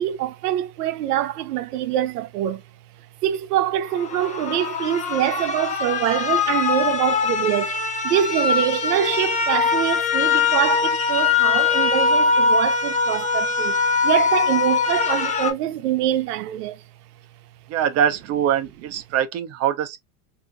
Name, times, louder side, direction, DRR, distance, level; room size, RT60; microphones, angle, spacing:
voice 1, 0.0-2.6 3.2-7.8 8.0-13.8 14.0-16.8, right 11 dB, 70° right, 0.8 m, -24 dB
sound 1, 3.9-15.5, left 5 dB, 15° left, 0.6 m, -22 dB
voice 2, 17.7-20.0, right 9 dB, 30° right, 0.8 m, -23 dB
3.4 x 2.8 x 2.6 m
supercardioid pair, 125°, 48 cm